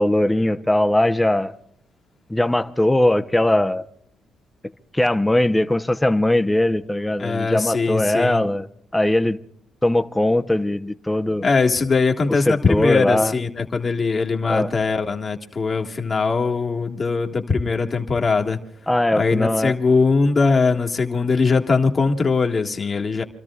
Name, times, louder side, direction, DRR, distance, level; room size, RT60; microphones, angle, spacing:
voice 1, 0.0-1.5 2.3-3.8 4.9-8.7 8.9-9.4 9.8-11.5 12.5-13.3 14.5-14.7 18.9-19.7, left 1 dB, 10° left, 0.9 m, -20 dB
voice 2, 7.2-8.5 11.4-18.6 19.2-23.2, left 4 dB, 35° left, 1.8 m, -21 dB
29.5 x 13.5 x 2.4 m
cardioid pair, 90°, 0 cm